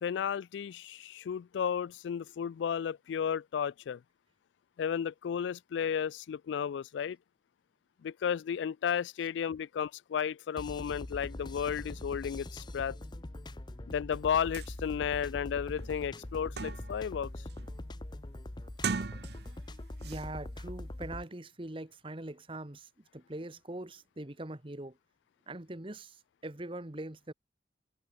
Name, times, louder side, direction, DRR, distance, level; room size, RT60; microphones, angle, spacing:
voice 1, 0.0-4.0 4.8-7.2 8.0-13.0 13.9-17.3, left 7 dB, 80° left, 0.3 m, -33 dB
sound 1, 10.6-21.2, left 1 dB, 25° left, 0.7 m, -43 dB
sound 2, 14.2-14.3 14.5-14.7 15.3-15.4 15.8-17.1 17.5-17.9 18.7-19.7 20.0-20.2, right 5 dB, 60° right, 0.6 m, -38 dB
voice 2, 20.0-25.0 25.5-27.3, right 1 dB, 30° right, 1.3 m, -42 dB
head